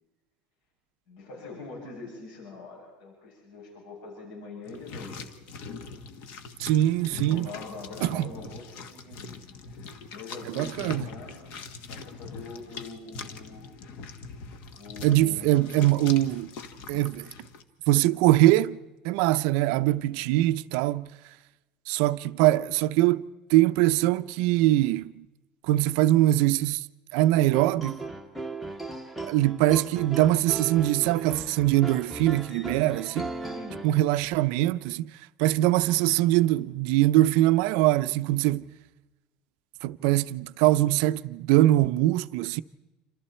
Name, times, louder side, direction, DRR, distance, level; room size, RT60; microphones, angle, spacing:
voice 1, 1.1-5.1 7.0-9.3 10.0-11.5 11.9-13.7 14.7-15.7 20.1-20.3 33.5-33.8, left 3 dB, 70° left, 7.7 m, -43 dB
sound 1, 4.6-17.6, left 4 dB, 50° left, 1.6 m, -42 dB
voice 2, 6.6-7.5 8.0-8.3 10.6-11.1 15.0-16.5 16.9-17.3 17.9-18.8 19.0-21.1 21.9-23.2 23.5-25.3 25.7-26.9 27.1-28.0 29.2-33.3 33.8-35.1 35.4-38.7 39.8-42.6, right 15 dB, 65° right, 0.6 m, -22 dB
sound 2, 27.3-34.0, right 2 dB, ahead, 1.0 m, -37 dB
28.0 x 26.5 x 4.4 m
cardioid pair, 175°, 3 cm